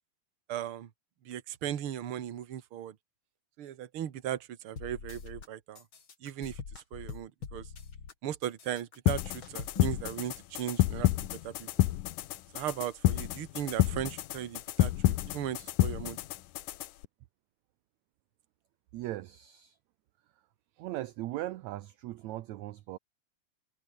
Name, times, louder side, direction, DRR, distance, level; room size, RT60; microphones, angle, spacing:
voice 1, 0.5-0.9 1.3-2.9 3.6-5.8 6.2-6.6 6.9-7.7 8.2-11.1 11.4-11.7 12.5-16.2, right 11 dB, 50° right, 1.8 m, -37 dB
sound 1, 4.8-5.5 5.7-8.1 8.4-10.1, left 5 dB, 35° left, 3.2 m, -44 dB
sound 2, 9.1-17.0, left 15 dB, 70° left, 2.2 m, -29 dB
voice 2, 18.9-19.8 20.8-23.0, right 15 dB, 75° right, 1.7 m, -39 dB
omnidirectional pair, 4.1 m